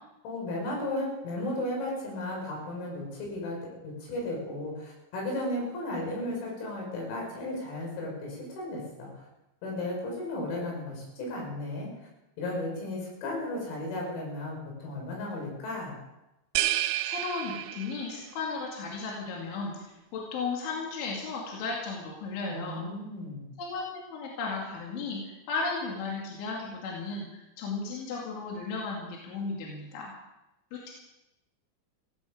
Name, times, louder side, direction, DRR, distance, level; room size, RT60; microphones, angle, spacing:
voice 1, 0.2-9.1 9.6-11.9 12.4-16.0 22.5-23.5, left 1 dB, 85° left, -1 dB, 7.9 m, -34 dB
sound 1, 16.6-18.3, right 15 dB, 85° right, 3.4 m, -30 dB
voice 2, 17.0-19.8 20.1-22.8 23.6-23.8 24.1-25.2 25.5-30.1 30.7-30.9, left 4 dB, 65° left, -2 dB, 4.6 m, -35 dB
16.5 x 16.0 x 5.0 m, 0.93 s
omnidirectional pair, 6.0 m